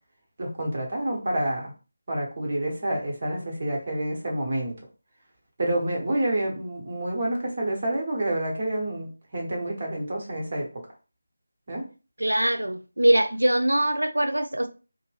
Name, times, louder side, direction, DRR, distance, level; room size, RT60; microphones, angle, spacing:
voice 1, 0.4-1.7 2.1-4.7 5.6-10.7 11.7-11.9, right 1 dB, 40° right, 1.1 m, -28 dB
voice 2, 12.2-14.7, right 1 dB, 80° right, 0.4 m, -22 dB
2.6 x 2.1 x 3.3 m
figure-of-eight pair, 160°, 0 cm